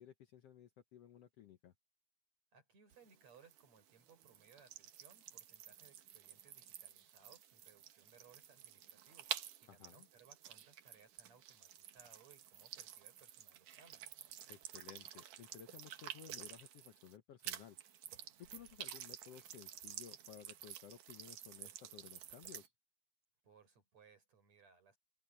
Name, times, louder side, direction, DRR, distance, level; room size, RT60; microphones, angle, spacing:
voice 1, 0.0-1.7 9.7-10.1 14.5-17.8 18.4-22.7, left 10 dB, 65° left, 1.7 m, -57 dB
voice 2, 2.5-14.1 23.4-25.0, right 6 dB, 60° right, 6.9 m, -66 dB
sound 1, 2.9-17.2 17.4-22.7, right 11 dB, 85° right, 3.0 m, -51 dB
omnidirectional pair, 3.6 m